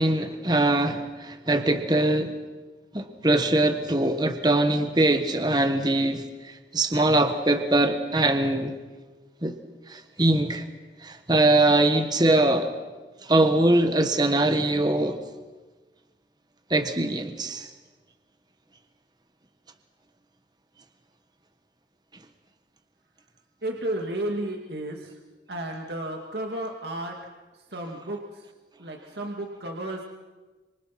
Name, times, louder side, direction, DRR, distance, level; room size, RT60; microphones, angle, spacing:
voice 1, 0.0-2.3 2.9-8.8 9.4-9.5 9.9-10.6 11.0-12.7 13.2-15.2 16.7-17.7, right 2 dB, 25° right, 7 dB, 1.5 m, -22 dB
voice 2, 23.6-25.1 25.5-27.3 27.7-28.4 28.8-30.0, right 1 dB, 70° right, 1 dB, 2.3 m, -33 dB
27.5 x 26.5 x 6.0 m, 1.3 s
head